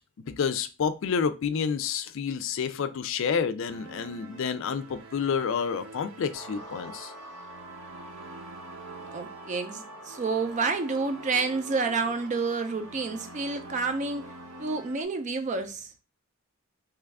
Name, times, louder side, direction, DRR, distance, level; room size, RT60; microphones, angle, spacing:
voice 1, 0.3-7.1, left 6 dB, 60° left, 0.3 m, -29 dB
sound 1, 3.7-15.0, right 3 dB, 70° right, 0.7 m, -47 dB
sound 2, 6.3-14.7, right 1 dB, 10° left, 0.8 m, -47 dB
voice 2, 9.0-14.2 14.6-15.9, right 4 dB, 35° right, 0.4 m, -29 dB
3.0 x 2.3 x 3.4 m
head